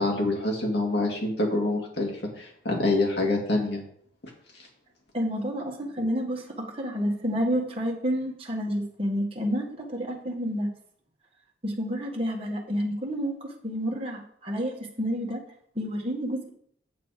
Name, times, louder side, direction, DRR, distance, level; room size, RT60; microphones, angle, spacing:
voice 1, 0.0-3.8, left 2 dB, 60° left, 0 dB, 2.4 m, -26 dB
voice 2, 5.1-10.7 11.6-15.4 15.8-16.5, equal, 30° right, -1 dB, 1.8 m, -29 dB
8.6 x 6.8 x 5.1 m, 0.63 s
head